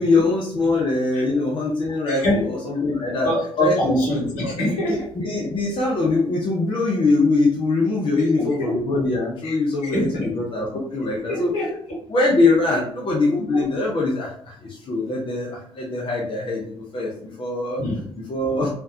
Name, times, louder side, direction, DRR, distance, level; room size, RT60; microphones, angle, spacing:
voice 1, 0.0-3.3 3.6-4.0 4.9-11.5 12.1-17.8 18.3-18.7, left 2 dB, 40° left, -2 dB, 0.9 m, -22 dB
voice 2, 2.1-2.5 3.2-5.1 8.1-8.7 9.4-9.5 9.8-10.3 11.3-11.7 13.5-13.7 17.8-18.1, left 1 dB, 65° left, -3 dB, 1.5 m, -25 dB
3.6 x 2.6 x 2.8 m, 0.63 s
hypercardioid pair, 50°, 14 cm